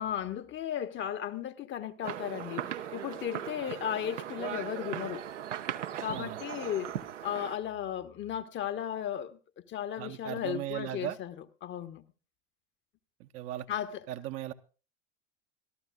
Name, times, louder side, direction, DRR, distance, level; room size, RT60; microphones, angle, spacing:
voice 1, 0.0-5.2 6.0-6.9 7.2-9.4 9.7-11.3 11.6-12.0 13.7-14.0, left 10 dB, 30° left, 1.0 m, -35 dB
sound 1, 2.0-7.6, right 10 dB, 75° right, 0.9 m, -38 dB
voice 2, 6.1-6.4 10.0-11.2 13.2-13.7 14.1-14.5, right 13 dB, 40° right, 0.8 m, -37 dB
25.0 x 13.5 x 2.3 m
figure-of-eight pair, 80°, 37 cm